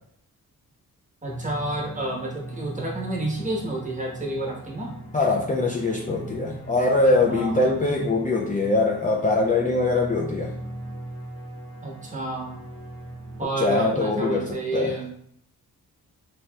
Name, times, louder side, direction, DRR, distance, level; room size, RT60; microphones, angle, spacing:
voice 1, 1.2-4.9 7.3-7.8 11.8-12.5 13.4-15.1, right 2 dB, 20° right, -2 dB, 1.0 m, -30 dB
sound 1, 1.3-13.5, right 1 dB, 80° left, 1.1 m, -39 dB
voice 2, 5.1-10.5 13.4-15.0, left 2 dB, 20° left, -1 dB, 0.4 m, -23 dB
2.9 x 2.8 x 2.2 m, 0.67 s
cardioid pair, 55°, 37 cm